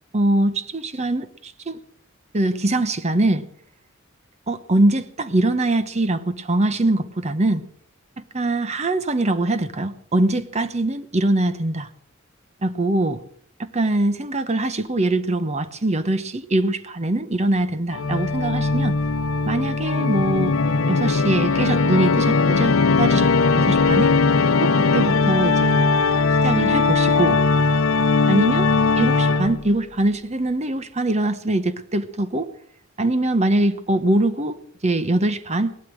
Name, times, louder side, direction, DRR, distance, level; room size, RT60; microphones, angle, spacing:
voice 1, 0.1-1.8 2.3-3.5 4.5-7.6 8.2-11.9 12.6-13.2 13.6-19.0 19.5-20.6 20.9-24.1 24.6-25.9 26.4-27.4 28.3-28.7 29.0-32.5 33.0-35.8, right 2 dB, 35° right, 12 dB, 1.0 m, -22 dB
Organ, 17.9-29.8, left 4 dB, 85° left, 0.7 m, -19 dB
18.0 x 12.0 x 6.3 m, 0.64 s
head